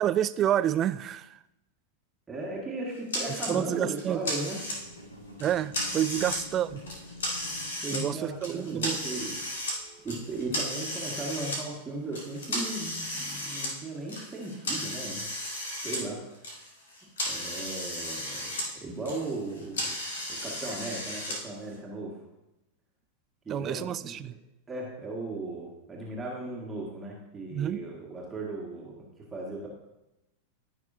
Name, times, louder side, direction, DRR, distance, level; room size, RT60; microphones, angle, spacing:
voice 1, 0.0-1.4 3.5-4.2 5.4-6.8 7.9-9.0 23.5-24.4 27.5-27.8, right 11 dB, 30° right, 15 dB, 0.3 m, -29 dB
voice 2, 2.3-4.6 6.1-6.2 7.8-9.4 10.0-15.3 15.8-16.2 17.3-18.5 18.8-19.9 20.4-22.2 23.5-24.2 24.7-29.7, right 2 dB, 15° right, -4 dB, 1.8 m, -36 dB
sound 1, 3.1-3.5 3.9-5.0 5.4-6.4 6.8-8.0 8.4-9.8 10.1-11.6 12.1-16.0 16.3-18.7 18.9-21.4, left 1 dB, 65° left, 2.5 m, -34 dB
sound 2, 4.4-11.9 12.4-12.5, left 1 dB, 85° left, 1.4 m, -49 dB
15.0 x 6.0 x 2.7 m, 0.93 s
figure-of-eight pair, 90°, 0 cm